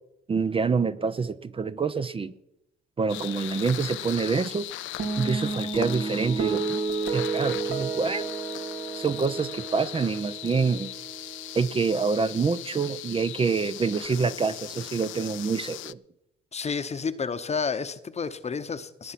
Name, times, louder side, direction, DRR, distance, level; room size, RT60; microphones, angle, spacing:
voice 1, 0.3-2.3 3.0-4.7 5.2-6.8 7.1-8.2 9.0-10.9 11.5-16.0, right 5 dB, 30° right, 0.5 m, -26 dB
sound 1, 3.1-15.9, left 16 dB, 75° left, 0.4 m, -38 dB
sound 2, 5.0-11.6, right 5 dB, 80° right, 2.4 m, -32 dB
voice 2, 16.5-19.1, left 5 dB, 35° left, 0.9 m, -30 dB
19.5 x 8.2 x 5.8 m
cardioid pair, 90°, 20 cm